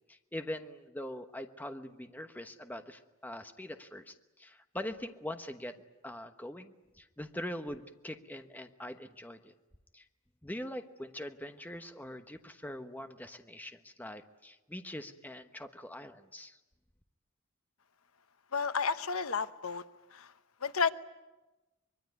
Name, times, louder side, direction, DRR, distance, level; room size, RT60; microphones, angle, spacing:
voice 1, 0.1-9.5 9.9-10.0 10.4-16.6, left 1 dB, 10° left, 7 dB, 1.1 m, -43 dB
voice 2, 18.5-19.8 20.1-20.3 20.6-20.9, left 5 dB, 85° left, 12 dB, 1.0 m, -31 dB
24.5 x 22.5 x 9.4 m, 1.1 s
head